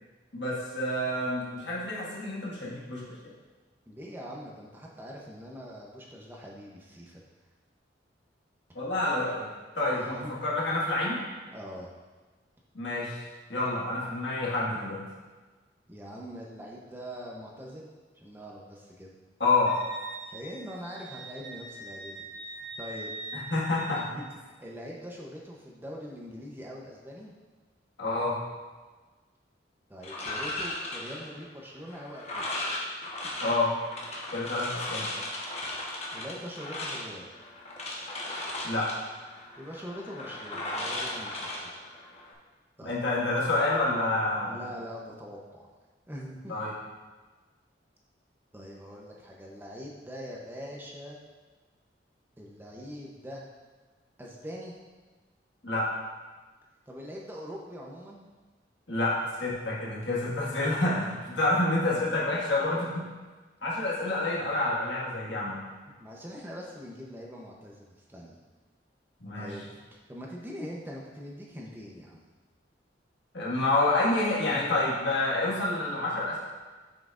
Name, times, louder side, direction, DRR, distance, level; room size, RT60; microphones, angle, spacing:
voice 1, 0.3-3.3 8.8-9.5 9.8-11.2 12.7-15.0 19.4-19.7 23.3-24.0 28.0-28.4 33.4-33.7 34.3-35.1 38.6-38.9 42.8-44.6 46.5-46.7 55.6-55.9 58.9-63.1 63.6-65.6 69.2-69.5 73.3-76.4, left 2 dB, 75° left, -6 dB, 1.7 m, -28 dB
voice 2, 3.9-7.2 9.9-10.3 11.5-11.9 15.9-17.9 18.1-19.1 20.3-22.1 22.5-23.1 23.9-27.3 29.9-32.4 36.1-37.3 39.6-41.5 41.8-41.9 42.8-43.0 44.4-45.7 46.1-46.5 48.5-51.2 52.4-53.5 54.2-54.7 56.9-58.3 66.0-68.4 69.3-69.7 70.1-72.2, equal, 10° right, -2 dB, 0.7 m, -42 dB
Wind instrument woodwind instrument, 19.7-24.1, right 2 dB, 85° right, 1.3 m, -43 dB
sound 1, 30.0-42.3, left 1 dB, 35° left, 1.0 m, -37 dB
7.6 x 5.8 x 2.5 m, 1.3 s
head